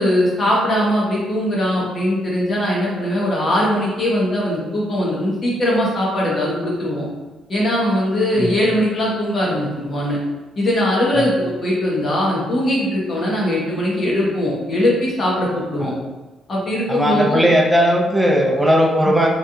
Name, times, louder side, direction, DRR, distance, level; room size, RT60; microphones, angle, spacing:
voice 1, 0.0-7.0 7.5-10.2 10.6-15.9 16.5-17.4 19.0-19.1, left 1 dB, 45° left, -4 dB, 1.2 m, -20 dB
voice 2, 16.9-19.3, equal, 5° right, 0 dB, 0.6 m, -17 dB
3.2 x 2.4 x 2.8 m, 1.2 s
cardioid pair, 90°, 0 cm